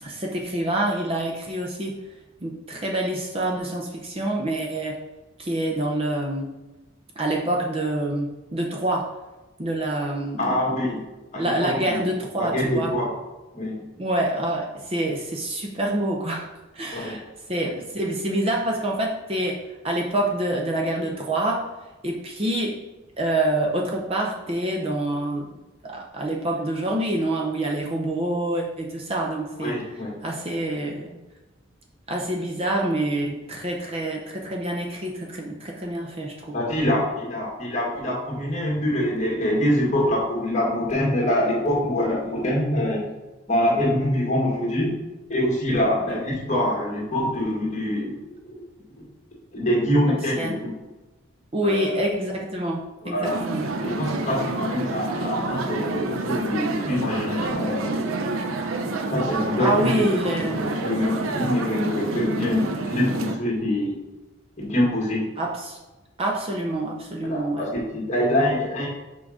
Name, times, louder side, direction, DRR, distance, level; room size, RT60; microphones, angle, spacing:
voice 1, 0.0-2.0 2.4-5.0 5.4-6.5 7.2-9.1 9.6-10.6 11.3-12.9 14.0-16.5 16.7-17.2 17.5-21.7 22.0-22.8 23.2-25.5 25.8-29.8 30.2-31.2 32.1-36.5 46.1-46.2 50.1-50.6 51.5-53.6 59.6-60.6 65.4-65.8 66.2-67.6, right 1 dB, 30° right, 0 dB, 0.7 m, -26 dB
voice 2, 10.4-11.0 11.3-12.1 12.4-13.1 13.5-13.9 16.9-17.2 29.6-30.2 36.5-43.1 43.5-44.9 45.3-48.3 49.0-49.1 49.5-50.8 51.6-51.9 53.0-53.4 53.8-58.1 59.1-64.0 64.6-65.3 67.2-68.9, left 1 dB, 35° left, -3 dB, 1.8 m, -25 dB
sound 1, 53.2-63.4, right 2 dB, 90° right, 0.6 m, -28 dB
6.0 x 3.8 x 4.9 m, 1.1 s
head